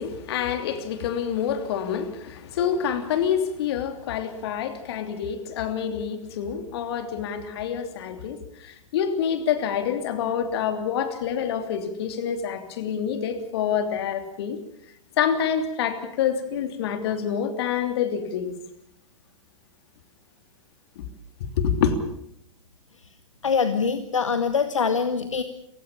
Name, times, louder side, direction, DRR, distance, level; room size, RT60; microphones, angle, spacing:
voice 1, 0.0-14.6 15.2-18.6 21.0-21.1 21.4-21.9, left 8 dB, 50° left, 9 dB, 3.0 m, -27 dB
voice 2, 23.4-25.4, left 5 dB, 75° left, 10 dB, 1.4 m, -24 dB
29.5 x 16.0 x 7.2 m, 0.73 s
figure-of-eight pair, 100°, 17 cm